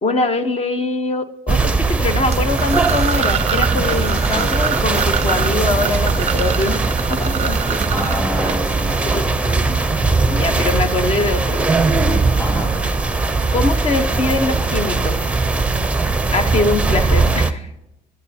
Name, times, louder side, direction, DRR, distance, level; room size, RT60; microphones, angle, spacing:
voice 1, 0.0-6.8 7.1-7.8 9.0-9.3 9.7-9.9 10.4-11.6 13.5-15.3 16.3-17.7, left 3 dB, 35° left, 9 dB, 1.2 m, -22 dB
sound 1, 1.5-17.5, right 3 dB, 5° right, 0.7 m, -19 dB
sound 2, 2.3-9.1, right 9 dB, 40° right, 0.4 m, -26 dB
sound 3, 2.4-17.4, left 1 dB, 70° left, 3.8 m, -38 dB
voice 2, 4.2-4.5 7.9-9.2 10.3-10.5 12.4-12.9, left 1 dB, 15° left, 1 dB, 3.0 m, -28 dB
15.5 x 10.5 x 2.9 m, 0.87 s
cardioid pair, 110°, 17 cm